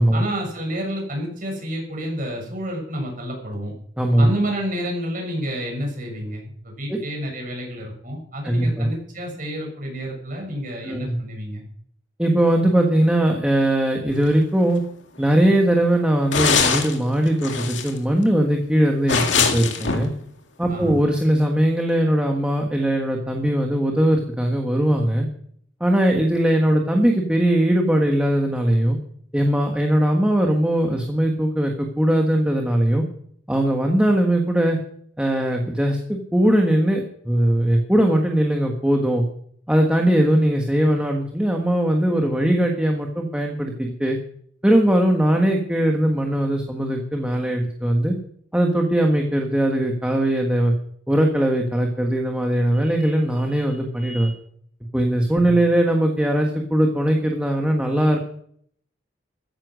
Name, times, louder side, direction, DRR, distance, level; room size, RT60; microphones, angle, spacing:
voice 1, 0.1-3.7 4.2-11.6 20.7-21.0 55.4-55.6, equal, 50° right, 0 dB, 6.7 m, -29 dB
voice 2, 4.0-4.3 6.9-7.0 8.4-8.9 10.8-11.2 12.2-14.8 15.2-20.1 20.6-25.3 25.8-29.0 29.3-33.0 33.5-34.8 35.2-39.2 39.7-44.2 44.6-48.1 48.5-50.7 51.1-54.3 54.9-58.2, right 1 dB, 5° right, 1 dB, 1.4 m, -20 dB
sound 1, 14.3-14.4 14.6-14.8 15.2-15.3 16.3-17.0 17.3-18.0 19.1-20.1, left 5 dB, 85° left, 2.1 m, -22 dB
14.5 x 10.0 x 6.4 m, 0.64 s
head